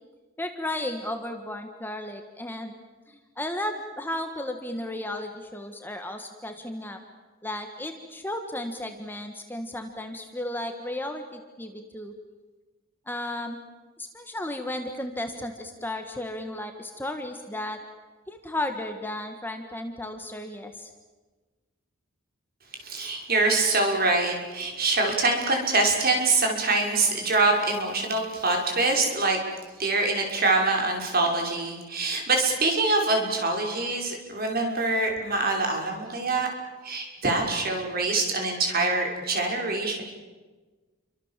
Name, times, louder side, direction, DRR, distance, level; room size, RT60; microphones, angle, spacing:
voice 1, 0.4-2.7 3.1-7.0 7.4-12.1 13.1-13.6 14.0-17.8 18.3-20.9, left 1 dB, 10° left, 5 dB, 1.7 m, -34 dB
voice 2, 22.7-29.4 29.8-36.5 36.8-40.0, right 3 dB, 45° right, 2 dB, 6.0 m, -24 dB
29.5 x 25.0 x 7.6 m, 1.3 s
head